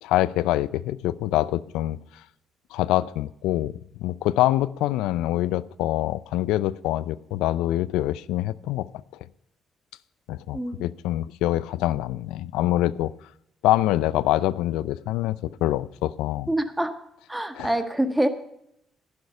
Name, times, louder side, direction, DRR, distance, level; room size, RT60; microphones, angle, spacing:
voice 1, 0.0-2.0 2.7-8.9 10.3-13.1 13.6-16.5 17.5-17.7, left 15 dB, 85° left, 20 dB, 0.4 m, -25 dB
voice 2, 16.5-16.9 17.3-18.3, right 1 dB, 10° right, 8 dB, 1.6 m, -25 dB
11.0 x 10.5 x 5.4 m, 0.77 s
supercardioid pair, 65°, 0 cm